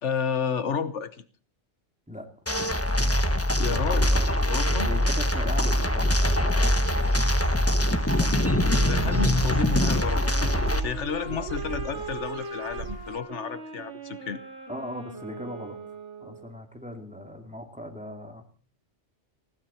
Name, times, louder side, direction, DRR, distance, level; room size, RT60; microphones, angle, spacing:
voice 1, 0.0-1.2 3.6-4.1 4.5-4.9 8.2-14.4, left 6 dB, 80° left, 13 dB, 1.4 m, -31 dB
sound 1, 2.5-10.8, equal, 10° left, 1.2 m, -23 dB
voice 2, 4.8-6.9 11.2-12.0 14.7-15.8 16.2-18.4, equal, 5° right, 3 dB, 2.5 m, -39 dB
Dog / Bird, 7.0-13.2, right 6 dB, 55° right, 1.2 m, -38 dB
sound 2, 8.7-16.5, right 2 dB, 85° right, 5.3 m, -40 dB
19.5 x 16.0 x 4.4 m, 0.39 s
omnidirectional pair, 1.2 m